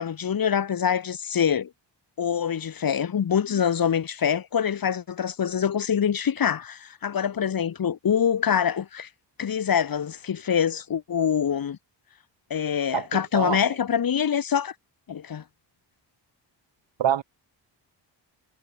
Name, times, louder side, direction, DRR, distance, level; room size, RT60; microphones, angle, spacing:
voice 1, 0.0-1.7 2.2-9.1 9.4-11.8 12.5-14.7 15.1-15.4, left 8 dB, 50° left, 2.7 m, -25 dB
voice 2, 12.9-13.6 17.0-17.2, right 10 dB, 75° right, 6.7 m, -26 dB
wide cardioid pair, 145°, 44 cm